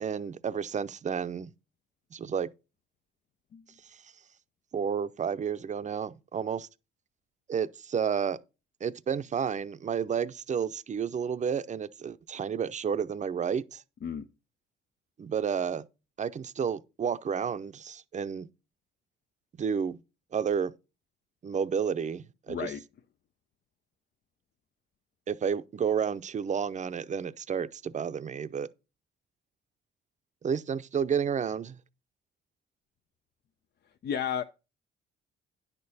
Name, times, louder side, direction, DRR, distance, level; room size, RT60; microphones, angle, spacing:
voice 1, 0.0-1.5 2.1-2.5 4.7-6.7 7.5-8.4 8.8-13.8 15.2-15.8 16.2-18.5 19.6-20.0 20.3-20.7 21.4-22.7 25.3-28.7 30.4-31.8, right 7 dB, 35° right, 0.6 m, -31 dB
voice 2, 22.5-22.8 34.0-34.4, left 8 dB, 55° left, 0.6 m, -32 dB
10.0 x 6.7 x 4.1 m
cardioid pair, 90°, 20 cm